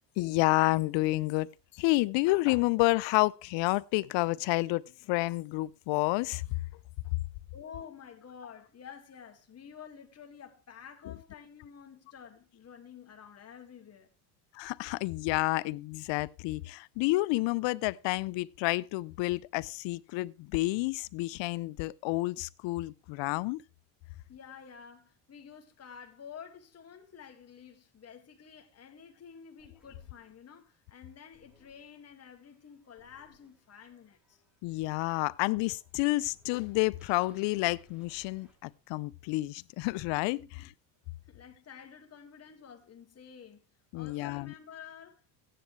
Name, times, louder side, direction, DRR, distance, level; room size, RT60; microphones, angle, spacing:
voice 1, 0.2-1.5 1.7-6.4 14.5-23.6 34.6-40.7 43.9-44.5, left 21 dB, 60° left, 0.7 m, -29 dB
voice 2, 7.5-14.1 24.3-34.4 40.4-40.7 41.3-43.6 43.9-45.4, left 7 dB, 30° left, 2.1 m, -50 dB
sound 1, 29.6-39.0, left 1 dB, ahead, 3.1 m, -66 dB
15.0 x 10.0 x 3.2 m
supercardioid pair, 105°, 49 cm